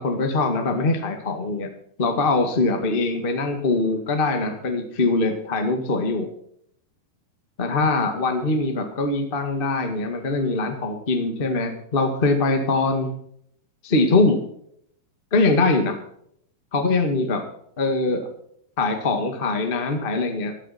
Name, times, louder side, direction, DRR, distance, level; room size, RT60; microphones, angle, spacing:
voice 1, 0.0-1.7 2.0-6.3 7.6-13.1 13.8-14.4 15.3-16.0 16.7-17.4 17.8-18.3 18.8-20.5, left 3 dB, 50° left, 5 dB, 0.6 m, -22 dB
15.0 x 12.0 x 4.2 m, 0.70 s
omnidirectional pair, 4.3 m